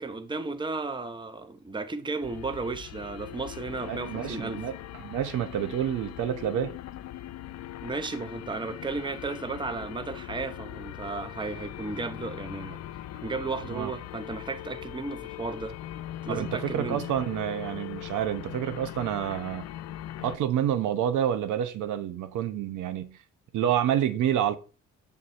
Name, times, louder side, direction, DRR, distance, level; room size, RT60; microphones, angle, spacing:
voice 1, 0.0-4.6 7.8-12.8 13.2-15.7 16.2-17.0, right 3 dB, 15° right, 0.7 m, -34 dB
sound 1, 2.2-20.4, left 13 dB, 60° left, 0.4 m, -40 dB
voice 2, 3.9-4.7 5.0-6.7 13.7-13.9 16.3-19.7 20.2-23.2 23.5-24.6, right 10 dB, 80° right, 0.7 m, -28 dB
6.5 x 3.6 x 4.1 m
cardioid pair, 90°, 30 cm